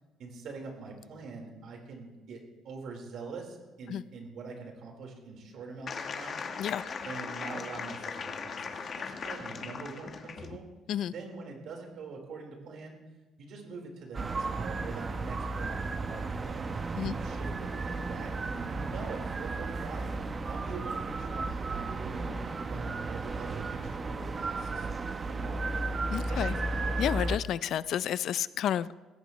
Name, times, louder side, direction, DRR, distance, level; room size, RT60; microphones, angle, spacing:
voice 1, 0.2-6.4 6.7-10.6 11.1-13.0 13.4-20.1 20.5-22.4 22.7-24.9 25.2-25.7 26.3-26.7, right 4 dB, 65° right, 1 dB, 4.3 m, -44 dB
sound 1, 5.9-10.6, left 5 dB, 40° left, 1.2 m, -38 dB
sound 2, 14.1-27.4, right 3 dB, 30° right, 0.9 m, -34 dB
voice 2, 26.1-26.5 27.0-28.9, left 10 dB, 60° left, 17 dB, 0.4 m, -30 dB
20.5 x 16.5 x 3.2 m, 1.2 s
cardioid pair, 130°, 0 cm